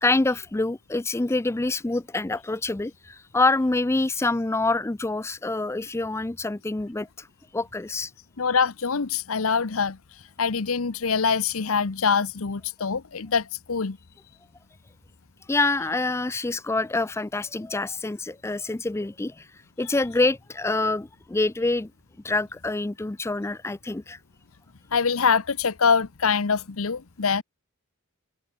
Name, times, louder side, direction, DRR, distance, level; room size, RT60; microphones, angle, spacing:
voice 1, 0.0-7.3 7.5-8.1 15.5-19.5 19.8-21.9 22.2-24.2, left 2 dB, 10° left, 0.4 m, -26 dB
voice 2, 8.4-10.0 10.4-14.0 24.9-27.4, left 5 dB, 75° left, 0.9 m, -24 dB
head